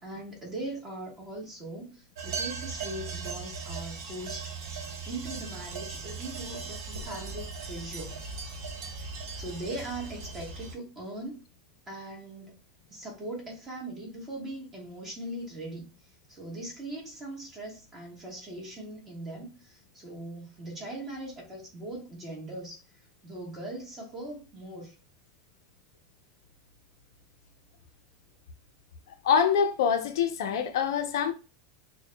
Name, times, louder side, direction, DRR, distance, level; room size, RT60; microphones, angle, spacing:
voice 1, 0.0-4.5 5.0-8.2 9.0-9.1 9.3-11.4 11.9-12.6 12.9-15.9 16.3-22.8 23.2-24.9, right 1 dB, 15° right, 1.5 m, -40 dB
sound 1, 2.2-10.7, right 5 dB, 70° right, 1.1 m, -38 dB
voice 2, 29.2-31.3, left 7 dB, 80° left, 0.7 m, -25 dB
6.7 x 2.3 x 2.2 m
supercardioid pair, 170°, 2 cm